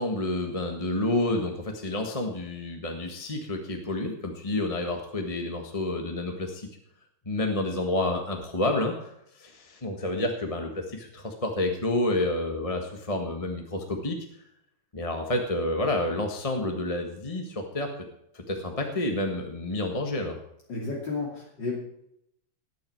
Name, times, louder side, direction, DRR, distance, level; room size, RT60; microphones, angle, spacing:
voice 1, 0.0-6.7 7.2-14.2 14.9-17.9 18.5-20.4, left 2 dB, 20° left, 3 dB, 1.4 m, -29 dB
voice 2, 20.7-21.9, left 3 dB, 60° left, -3 dB, 3.4 m, -32 dB
19.5 x 9.3 x 4.6 m, 0.76 s
omnidirectional pair, 2.2 m